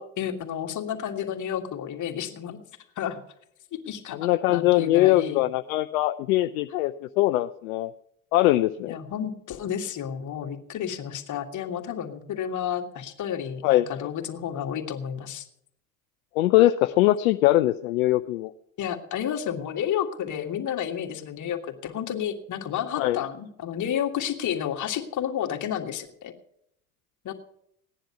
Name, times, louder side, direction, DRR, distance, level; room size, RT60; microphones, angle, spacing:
voice 1, 0.0-2.6 3.0-3.2 3.7-5.4 8.9-15.5 18.8-26.3 27.2-27.3, left 9 dB, 40° left, 4 dB, 2.1 m, -31 dB
voice 2, 4.1-7.9 8.3-8.9 13.6-14.1 16.4-18.5 23.0-23.2, left 16 dB, 70° left, 10 dB, 0.6 m, -22 dB
16.5 x 10.0 x 5.7 m, 0.73 s
hypercardioid pair, 70°, 43 cm